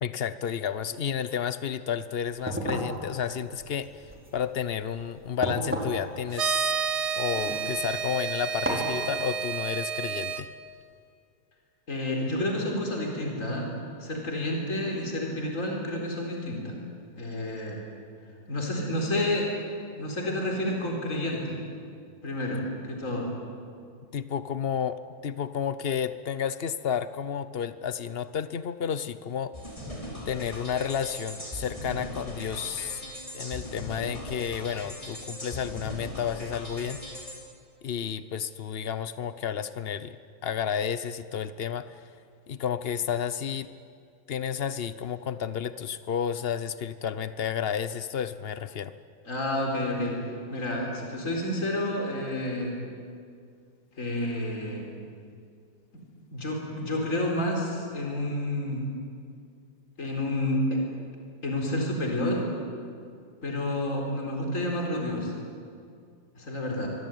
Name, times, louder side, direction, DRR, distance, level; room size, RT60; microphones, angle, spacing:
voice 1, 0.0-3.9 4.3-6.8 7.2-10.5 24.1-29.6 30.3-33.0 33.3-37.0 37.8-40.2 40.4-42.0 42.5-43.7 44.3-48.9, left 8 dB, 85° left, 13 dB, 0.5 m, -31 dB
sound 1, 2.2-8.1 8.7-9.0, equal, 5° right, 4.4 m, -35 dB
sound 2, 6.3-10.4, right 6 dB, 55° right, 1.7 m, -30 dB
voice 2, 11.9-13.7 14.0-16.7 17.1-17.8 18.5-19.5 20.0-21.6 22.2-23.3 49.3-50.2 50.5-52.7 54.0-54.9 56.3-58.9 60.0-60.8 61.4-62.5 63.4-65.3 66.3-66.9, left 1 dB, 40° left, 0 dB, 4.7 m, -29 dB
sound 3, 29.5-37.4, left 1 dB, 15° left, 5.6 m, -39 dB
25.5 x 24.0 x 9.3 m, 2.3 s
omnidirectional pair, 2.1 m